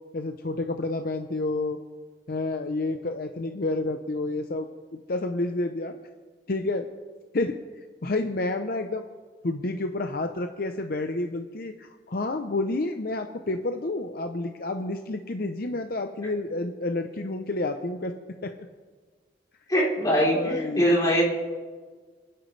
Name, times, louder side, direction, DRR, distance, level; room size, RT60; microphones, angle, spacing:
voice 1, 0.1-1.8 2.3-4.7 5.1-6.0 6.5-6.9 7.3-9.0 9.4-18.1 18.4-18.5 20.3-20.8, left 2 dB, 55° left, 6 dB, 0.7 m, -29 dB
voice 2, 19.7-21.3, equal, 20° left, -5 dB, 3.7 m, -22 dB
29.5 x 10.5 x 3.3 m, 1.5 s
head